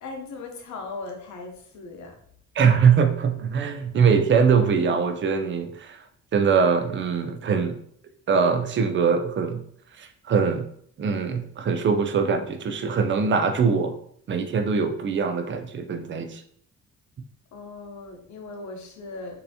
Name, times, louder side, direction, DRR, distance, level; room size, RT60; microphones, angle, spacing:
voice 1, 0.0-2.2 17.5-19.4, left 3 dB, 70° left, 3 dB, 0.8 m, -38 dB
voice 2, 2.6-6.0 6.3-7.8 8.3-9.6 10.0-10.7 11.0-14.0 14.3-16.4, right 6 dB, 40° right, 7 dB, 0.5 m, -22 dB
3.1 x 2.7 x 2.8 m, 0.64 s
cardioid pair, 90°, 30 cm